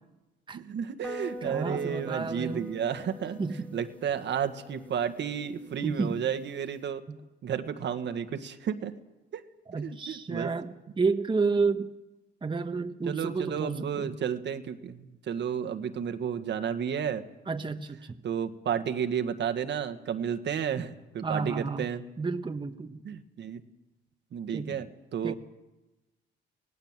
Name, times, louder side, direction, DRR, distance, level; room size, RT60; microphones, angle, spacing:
voice 1, 0.5-3.4 3.7-7.0 7.4-8.9 9.3-9.4 9.7-10.5 13.1-17.2 18.2-22.0 23.0-23.6 24.3-24.9 25.1-25.3, right 8 dB, 65° right, 9 dB, 1.6 m, -32 dB
sound 1, 1.0-6.8, left 1 dB, 5° left, 1.9 m, -45 dB
voice 2, 1.4-2.7 3.4-3.8 5.8-6.2 7.1-7.2 9.7-11.9 12.4-14.2 17.5-18.2 21.2-21.9 22.2-23.0 24.5-24.9 25.2-25.3, right 4 dB, 25° right, 7 dB, 1.2 m, -31 dB
25.0 x 18.0 x 7.5 m, 1.0 s
cardioid pair, 90°, 20 cm